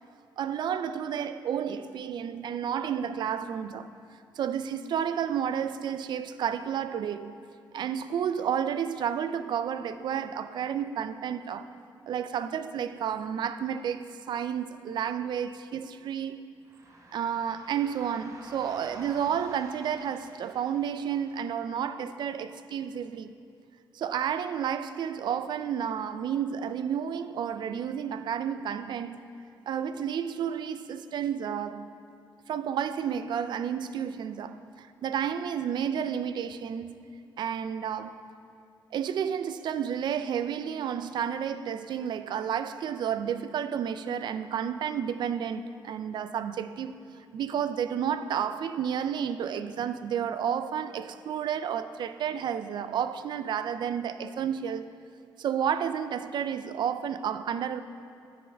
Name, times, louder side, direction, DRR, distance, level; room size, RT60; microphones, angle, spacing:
voice 1, 0.4-3.9 4.4-7.4 7.7-11.7 12.1-16.4 17.1-23.3 23.9-29.2 29.7-31.9 32.5-37.0 37.4-38.2 38.9-47.0 47.3-54.9 55.4-57.8, right 8 dB, 65° right, 0.4 m, -31 dB
sound 1, 16.6-21.8, right 2 dB, 40° right, 1.0 m, -50 dB
15.0 x 6.4 x 3.4 m
cardioid pair, 110°, 8 cm